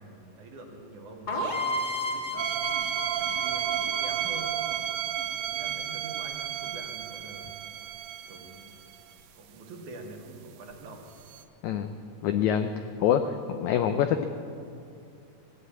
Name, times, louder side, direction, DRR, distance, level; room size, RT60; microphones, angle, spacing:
voice 1, 0.0-4.6 5.4-7.5 8.3-8.8 9.3-11.1, right 2 dB, 65° right, 1 dB, 2.8 m, -46 dB
sound 1, 1.3-5.0, left 1 dB, 40° left, 0.6 m, -33 dB
sound 2, 2.4-9.0 11.3-11.4, right 11 dB, 80° right, 2.2 m, -32 dB
voice 2, 11.6-11.9 12.2-12.7 13.0-14.2, left 9 dB, 85° left, 8 dB, 1.6 m, -25 dB
16.5 x 9.6 x 8.3 m, 2.5 s
omnidirectional pair, 4.1 m